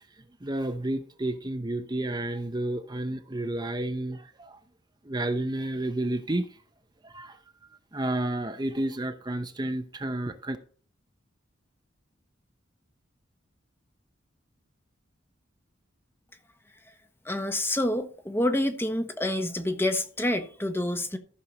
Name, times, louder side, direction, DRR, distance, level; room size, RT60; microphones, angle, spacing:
voice 1, 0.4-4.6 5.0-6.6 7.0-7.4 7.9-10.6, right 1 dB, 20° right, 0.8 m, -31 dB
voice 2, 17.2-21.2, left 1 dB, 10° left, 1.2 m, -28 dB
14.5 x 6.5 x 4.2 m
head